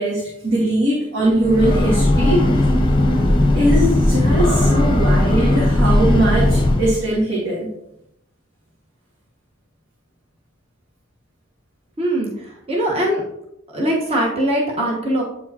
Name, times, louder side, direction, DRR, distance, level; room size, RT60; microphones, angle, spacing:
voice 1, 0.0-2.7 3.5-7.7, right 1 dB, 60° right, -5 dB, 1.6 m, -20 dB
Breathing / Train, 1.3-7.1, left 1 dB, 25° left, 0.8 m, -17 dB
voice 2, 12.0-13.2 13.7-15.2, right 1 dB, 30° right, -3 dB, 1.2 m, -21 dB
8.4 x 4.7 x 2.8 m, 0.79 s
head